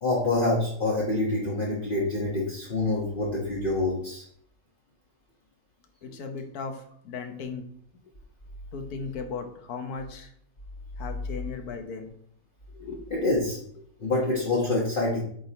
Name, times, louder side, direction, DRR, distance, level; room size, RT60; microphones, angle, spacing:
voice 1, 0.0-4.2 13.1-13.6 14.0-15.2, left 2 dB, 35° left, -5 dB, 1.3 m, -26 dB
voice 2, 6.0-7.6 8.7-10.3 11.0-12.1 12.7-13.0, left 5 dB, 70° left, 6 dB, 1.4 m, -37 dB
8.0 x 3.8 x 4.1 m, 0.65 s
omnidirectional pair, 1.7 m